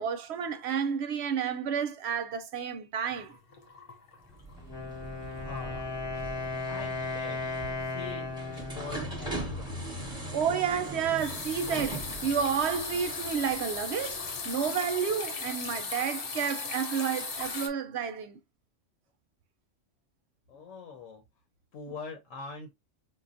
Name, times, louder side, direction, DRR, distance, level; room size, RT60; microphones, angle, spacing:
voice 1, 0.0-3.3 10.3-18.4, right 7 dB, 65° right, 0.7 m, -31 dB
sound 1, 3.1-4.7 5.0-5.3 5.7-5.8 10.4-17.7, left 4 dB, 50° left, 0.9 m, -38 dB
sound 2, 4.3-15.0, right 2 dB, 5° right, 0.9 m, -41 dB
Wind instrument woodwind instrument, 4.6-10.3, left 3 dB, 20° left, 0.9 m, -37 dB
voice 2, 5.2-6.3 6.7-7.4 7.8-9.8 20.5-21.2 21.7-22.7, left 4 dB, 80° left, 1.2 m, -43 dB
5.0 x 2.3 x 2.5 m
omnidirectional pair, 1.3 m